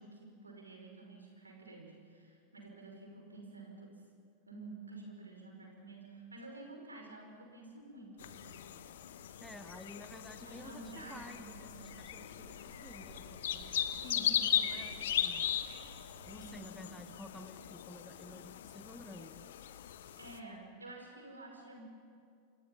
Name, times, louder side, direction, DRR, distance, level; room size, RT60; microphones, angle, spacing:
voice 1, 0.0-4.0 4.5-8.7 10.4-11.6 14.0-14.6 16.3-17.2 20.2-21.8, right 2 dB, 80° right, 1 dB, 5.6 m, -50 dB
sound 1, 8.2-20.4, left 10 dB, 60° left, 1.1 m, -38 dB
sound 2, 8.2-16.5, right 1 dB, 60° right, 5.9 m, -58 dB
voice 2, 9.4-13.9 14.1-15.5 16.3-19.5, left 1 dB, 5° left, 7 dB, 1.5 m, -52 dB
28.5 x 26.5 x 5.9 m, 2.2 s
figure-of-eight pair, 90°, 0 cm